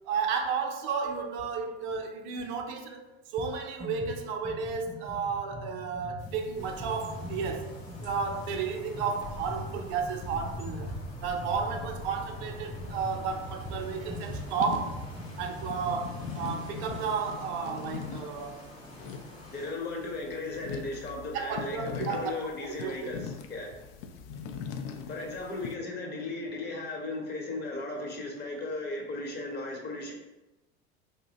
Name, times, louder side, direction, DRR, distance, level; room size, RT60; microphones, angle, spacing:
voice 1, 0.0-7.7 8.0-10.9 11.2-15.0 15.4-18.6 21.3-23.1, right 5 dB, 55° right, 4 dB, 0.6 m, -33 dB
sound 1, 3.4-3.5 3.8-17.1, equal, ahead, 0.4 m, -41 dB
sound 2, 6.2-25.8, left 6 dB, 65° left, 0.4 m, -43 dB
sound 3, 6.6-19.7, left 1 dB, 85° left, 0.9 m, -48 dB
voice 2, 19.5-23.7 25.1-30.1, left 2 dB, 30° left, 0 dB, 0.9 m, -36 dB
2.6 x 2.1 x 3.9 m, 1.0 s
hypercardioid pair, 80°, 32 cm